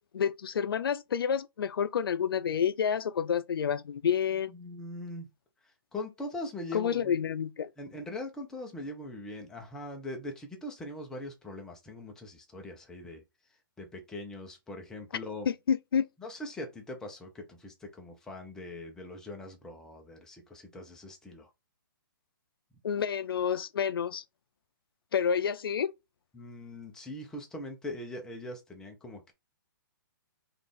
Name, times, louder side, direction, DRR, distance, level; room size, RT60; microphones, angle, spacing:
voice 1, 0.1-4.5 6.7-7.7 15.5-16.1 22.8-24.2 25.1-25.9, left 7 dB, 85° left, 0.4 m, -29 dB
voice 2, 4.5-5.3 5.6-7.2 7.8-13.2 13.8-15.5 16.2-21.5 26.3-29.3, left 1 dB, 5° left, 0.6 m, -41 dB
4.0 x 2.5 x 3.3 m
hypercardioid pair, 160°, 12 cm